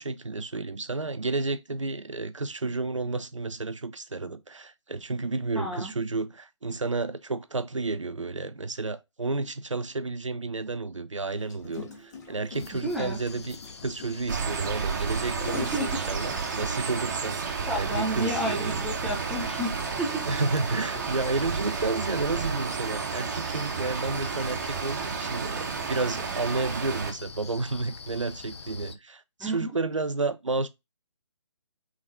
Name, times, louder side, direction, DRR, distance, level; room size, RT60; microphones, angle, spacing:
voice 1, 0.0-19.1 20.3-30.7, right 3 dB, 85° right, 0.6 m, -31 dB
voice 2, 5.6-5.9 12.7-13.2 15.5-15.9 17.7-20.2 29.4-29.7, equal, ahead, 0.5 m, -31 dB
Gurgling, 11.4-16.9 17.4-17.5 17.8-18.0 18.3-18.4 19.2-21.7 22.3-22.5, left 3 dB, 35° left, 1.3 m, -43 dB
sound 1, 12.5-29.0, left 5 dB, 60° left, 0.6 m, -44 dB
sound 2, 14.3-27.1, right 6 dB, 40° right, 0.9 m, -32 dB
3.7 x 3.6 x 3.7 m
figure-of-eight pair, 140°, 16 cm